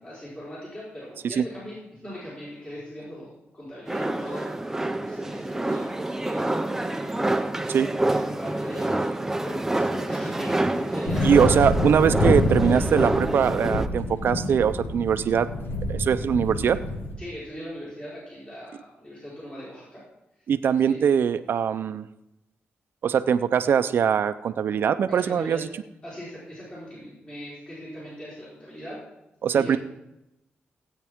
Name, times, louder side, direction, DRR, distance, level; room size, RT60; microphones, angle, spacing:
voice 1, 0.0-7.2 8.1-11.3 17.2-20.0 20.8-21.0 25.1-25.6 26.0-29.0 29.5-29.8, equal, 25° left, -9 dB, 4.8 m, -40 dB
sound 1, 3.9-13.9, right 2 dB, 10° right, 0.6 m, -27 dB
sound 2, 11.1-17.1, left 2 dB, 85° left, 2.0 m, -27 dB
voice 2, 11.2-15.5 15.9-16.8 20.5-22.0 23.0-25.7 29.4-29.8, right 7 dB, 65° right, 12 dB, 0.6 m, -22 dB
16.5 x 8.9 x 3.7 m, 0.92 s
cardioid pair, 115°, 4 cm